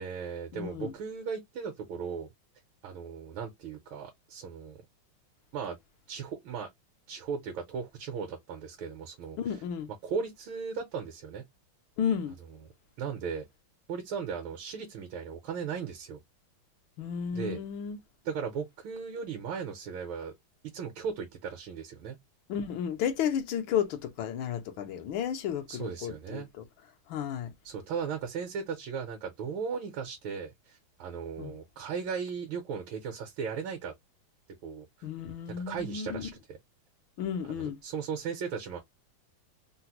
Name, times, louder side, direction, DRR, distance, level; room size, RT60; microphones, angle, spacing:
voice 1, 0.0-2.3 2.8-4.8 5.5-5.8 6.1-6.7 7.1-9.4 10.0-11.5 13.0-13.5 13.9-16.2 17.3-17.6 18.2-20.3 20.6-22.2 25.7-26.5 27.6-33.9 34.6-35.1 35.7-36.6 37.5-38.8, right 6 dB, 80° right, 1.5 m, -37 dB
voice 2, 0.5-0.9 9.4-9.9 12.0-12.4 17.0-18.0 22.5-26.6 27.1-27.5 31.4-31.5 35.0-36.3 37.2-37.8, left 8 dB, 75° left, 1.5 m, -33 dB
3.9 x 2.0 x 2.8 m
omnidirectional pair, 2.3 m